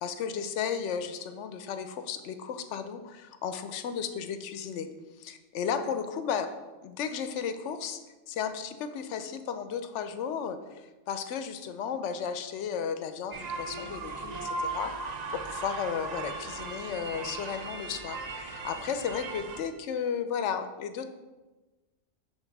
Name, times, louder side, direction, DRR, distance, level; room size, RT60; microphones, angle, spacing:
voice 1, 0.0-4.9 5.2-6.5 6.8-8.0 8.3-14.9 15.3-21.1, left 7 dB, 70° left, 9 dB, 0.8 m, -34 dB
sound 1, 13.3-19.6, right 3 dB, 55° right, 0.4 m, -37 dB
6.0 x 3.9 x 5.3 m, 1.2 s
omnidirectional pair, 1.4 m